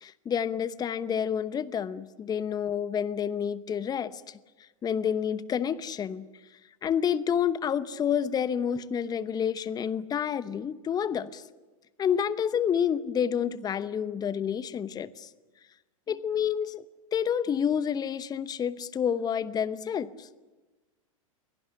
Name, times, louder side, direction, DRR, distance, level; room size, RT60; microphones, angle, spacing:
voice 1, 0.0-4.4 4.8-6.3 6.8-11.4 12.0-15.3 16.1-16.8 17.1-20.3, left 8 dB, 20° left, 16 dB, 0.9 m, -29 dB
22.5 x 18.0 x 9.9 m, 1.2 s
hypercardioid pair, 100°, 18 cm